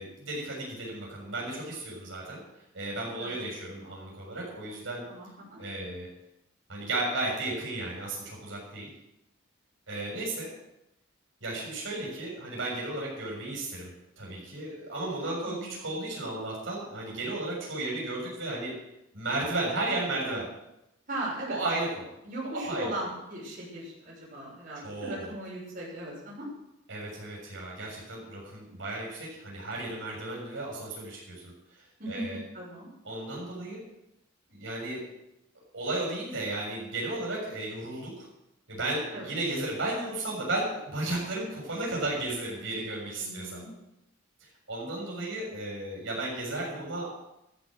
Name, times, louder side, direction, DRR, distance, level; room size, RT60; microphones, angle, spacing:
voice 1, 0.0-2.4 2.7-5.0 5.6-6.1 6.7-8.9 9.9-10.5 11.4-18.7 19.1-20.5 21.5-22.1 22.5-22.9 24.8-25.3 26.9-31.4 31.7-32.4 33.0-33.8 34.5-35.0 35.7-38.3 38.7-43.6 44.7-47.1, right 2 dB, 65° right, -3 dB, 6.8 m, -34 dB
voice 2, 5.1-5.6 15.4-15.8 21.1-21.6 22.2-26.5 32.0-32.2 32.5-32.9 39.1-39.3 43.2-43.7, right 1 dB, 40° right, -6 dB, 6.6 m, -38 dB
14.0 x 11.0 x 6.5 m, 0.87 s
head